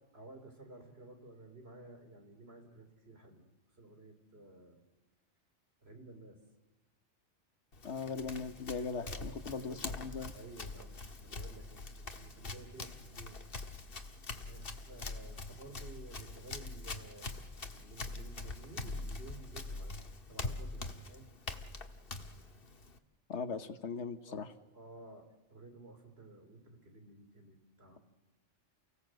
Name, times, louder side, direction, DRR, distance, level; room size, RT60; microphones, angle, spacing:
voice 1, 0.1-3.5 3.8-4.8 5.8-6.4 9.0-10.0 10.3-13.4 14.3-20.0 20.3-21.3 23.5-23.8 24.3-28.0, right 2 dB, 55° right, 5 dB, 3.7 m, -53 dB
Run, 7.7-23.0, left 3 dB, 50° left, 1.7 m, -44 dB
voice 2, 7.8-10.3 23.3-24.5, left 5 dB, 70° left, 11 dB, 1.4 m, -39 dB
29.5 x 16.5 x 7.8 m, 1.1 s
omnidirectional pair, 1.2 m